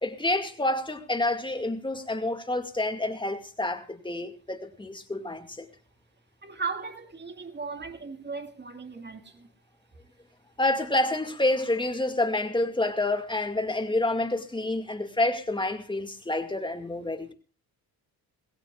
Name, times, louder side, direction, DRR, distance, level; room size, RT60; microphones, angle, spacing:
voice 1, 0.0-5.7 10.6-17.3, left 2 dB, 15° left, 2.1 m, -28 dB
voice 2, 6.4-9.5, right 4 dB, 30° right, 2.0 m, -37 dB
21.0 x 16.5 x 2.4 m
cardioid pair, 90°, 36 cm